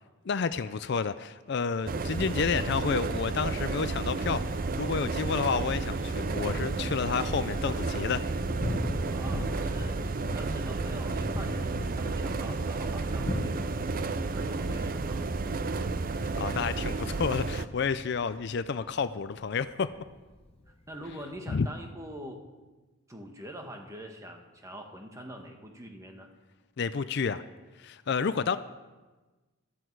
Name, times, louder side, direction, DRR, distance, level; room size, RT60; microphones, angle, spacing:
voice 1, 0.2-4.4 4.8-8.2 10.3-10.4 16.4-19.9 21.5-21.7 26.8-27.4 27.8-28.6, left 5 dB, 55° left, 13 dB, 0.4 m, -30 dB
sound 1, 1.9-17.7, right 3 dB, 40° right, 0.5 m, -31 dB
Thunder, 6.1-21.4, left 1 dB, 30° left, 0.9 m, -40 dB
voice 2, 9.1-10.0 10.3-13.7 14.3-15.2 20.9-22.4 23.1-26.3, equal, 15° right, 3 dB, 1.4 m, -44 dB
14.0 x 13.0 x 4.7 m, 1.2 s
head